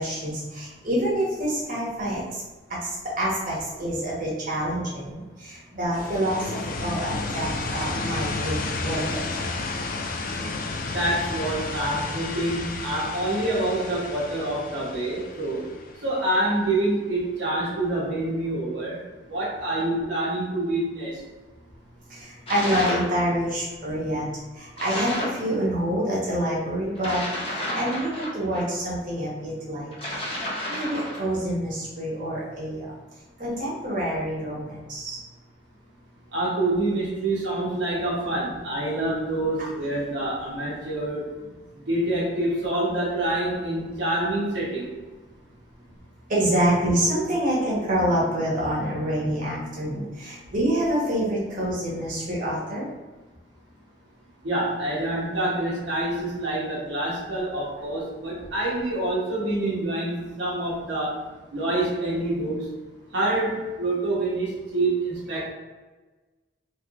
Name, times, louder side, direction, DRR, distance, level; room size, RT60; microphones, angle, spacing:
voice 1, 0.0-2.4 2.8-2.9 3.2-5.2 5.4-6.5 6.8-9.2 22.1-24.3 24.6-30.2 30.7-32.9 33.4-35.2 46.3-52.9, right 1 dB, 45° right, -5 dB, 1.0 m, -27 dB
sound 1, 5.9-16.6, left 3 dB, 45° left, 0.3 m, -32 dB
voice 2, 10.9-15.7 16.0-19.0 19.3-21.2 36.3-41.3 41.9-44.9 54.4-61.2 61.5-62.7 63.1-65.5, right 1 dB, 70° right, -6 dB, 0.9 m, -26 dB
sound 2, 22.5-23.2 24.8-25.4 27.0-28.7 29.9-31.3, left 1 dB, 30° left, 0.8 m, -31 dB
3.1 x 3.1 x 2.4 m, 1.2 s
head